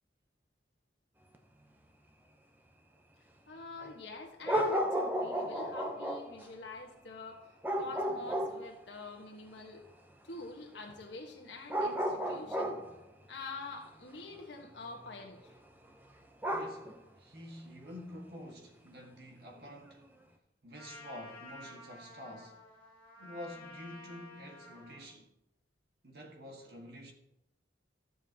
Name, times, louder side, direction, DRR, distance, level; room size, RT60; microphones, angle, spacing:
sound 1, 1.3-1.4 3.8-3.9 4.4-6.5 7.6-8.8 10.9-11.0 11.7-13.0 15.0-15.5 16.4-17.0 17.8-18.0, equal, 10° right, 0.7 m, -33 dB
voice 1, 3.5-9.8 10.2-12.8 13.3-15.5, left 3 dB, 85° left, 1.4 m, -46 dB
voice 2, 16.5-20.1 20.6-22.6 23.2-25.3 26.0-27.1, equal, 65° right, 1.6 m, -48 dB
Trumpet, 20.8-25.1, left 2 dB, 10° left, 3.0 m, -52 dB
13.0 x 7.2 x 2.8 m
head